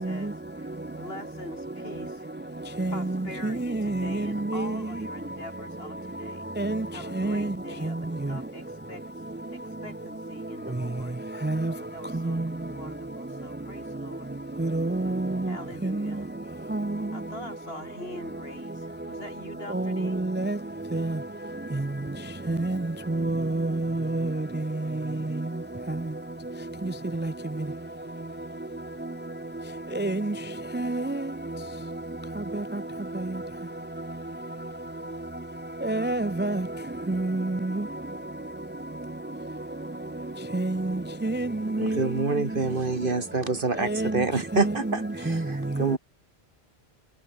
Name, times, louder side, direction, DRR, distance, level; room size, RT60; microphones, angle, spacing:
voice 1, 0.0-2.3 2.9-6.5 6.9-9.0 9.5-11.2 11.8-14.3 15.5-16.3 17.1-20.2, left 1 dB, 70° left, 6.8 m, -43 dB
voice 2, 3.4-4.7 6.6-6.9 7.2-7.5 11.4-11.7 12.3-12.4 14.6-15.5 15.8-15.9 16.7-16.9 19.7-20.6 20.9-21.1 22.5-22.8 23.1-24.3 27.2-27.3 30.0-30.3 30.7-31.1 35.8-36.6 37.1-37.8 40.5-42.0 43.8-44.1 44.5-44.9 45.3-45.4, right 2 dB, 15° right, 0.5 m, -27 dB
voice 3, 41.8-46.0, right 3 dB, 55° right, 2.3 m, -27 dB
omnidirectional pair, 1.1 m